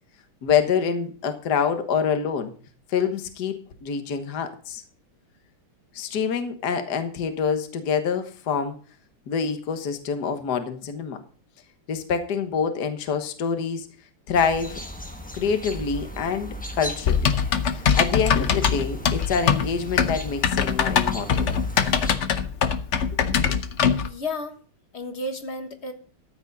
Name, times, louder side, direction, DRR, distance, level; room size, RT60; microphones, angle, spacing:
voice 1, 0.4-2.5 2.9-4.8 5.9-8.8 9.3-11.2 11.9-13.9 14.3-14.8 15.3-17.3 17.7-21.5 23.5-23.6, left 6 dB, 50° left, 7 dB, 1.7 m, -26 dB
sound 1, 14.3-22.2, equal, 10° left, 0.4 m, -36 dB
Typing, 17.0-24.1, left 7 dB, 85° left, 0.6 m, -22 dB
voice 2, 24.0-24.5 24.9-25.9, left 2 dB, 35° left, 6 dB, 1.4 m, -32 dB
14.0 x 9.0 x 4.0 m, 0.42 s
omnidirectional pair, 2.4 m